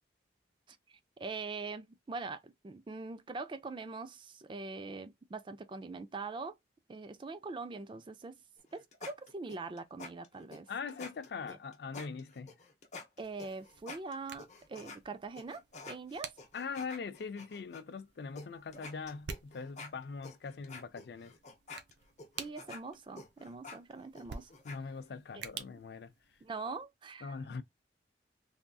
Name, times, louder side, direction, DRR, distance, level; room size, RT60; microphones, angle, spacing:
voice 1, 0.7-6.6 6.9-8.4 8.7-10.7 11.5-11.6 13.2-16.4 22.4-24.5 25.3-25.4 26.4-27.4, right 3 dB, 25° right, 0.3 m, -43 dB
sound 1, 8.6-15.0 15.4-17.8 18.4-18.5 18.7-24.8, left 3 dB, 40° left, 0.7 m, -49 dB
voice 2, 10.7-12.5 16.5-21.3 24.6-26.1 27.2-27.6, left 5 dB, 60° left, 0.4 m, -42 dB
sound 2, 13.2-26.8, right 6 dB, 75° right, 0.6 m, -51 dB
3.5 x 2.6 x 2.2 m
head